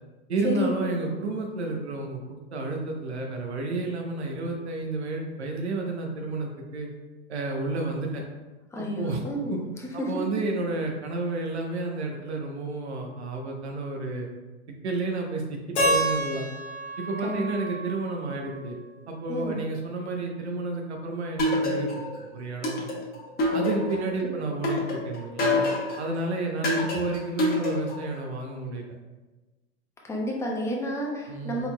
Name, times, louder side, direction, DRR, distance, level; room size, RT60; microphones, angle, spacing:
voice 1, 0.3-6.9 7.3-8.2 8.8-9.6 10.1-14.3 14.8-16.5 17.0-18.7 19.1-21.9 22.3-22.9 23.5-25.6 26.0-28.9 31.3-31.7, right 3 dB, 80° right, 2 dB, 0.8 m, -31 dB
voice 2, 8.7-9.6 10.0-10.1 17.2-17.4 19.3-19.6 30.0-31.7, equal, 10° left, -2 dB, 0.8 m, -30 dB
Keyboard (musical), 15.8-18.7, right 1 dB, 90° left, 1.3 m, -29 dB
sound 1, 21.4-22.2 22.6-24.1 24.6-26.1 26.6-28.1, left 1 dB, 30° left, 1.1 m, -26 dB
4.4 x 3.9 x 2.2 m, 1.2 s
hypercardioid pair, 100°, 32 cm